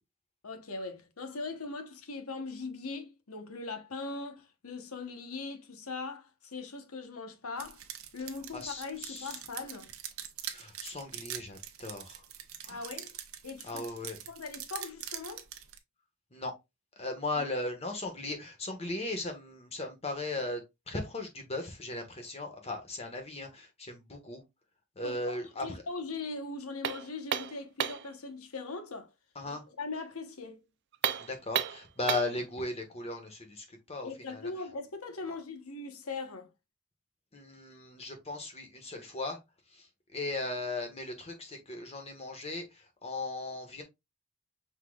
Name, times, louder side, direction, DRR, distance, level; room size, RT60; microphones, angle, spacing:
voice 1, 0.4-7.8 8.1-9.9 12.7-13.1 13.4-13.8 14.3-15.4 25.0-29.1 29.5-30.6 34.0-36.5, left 3 dB, 90° left, 1.1 m, -40 dB
sound 1, 7.6-15.8, right 11 dB, 75° right, 0.8 m, -43 dB
voice 2, 8.5-9.4 10.4-12.2 12.6-12.8 13.6-14.2 16.3-16.5 17.0-20.6 20.9-24.4 24.9-25.8 29.3-29.6 31.2-34.5 37.3-39.4 39.7-43.8, left 2 dB, 30° left, 1.4 m, -37 dB
sound 2, 26.8-28.1 30.9-32.4, right 9 dB, 55° right, 0.4 m, -32 dB
5.7 x 4.0 x 2.3 m
head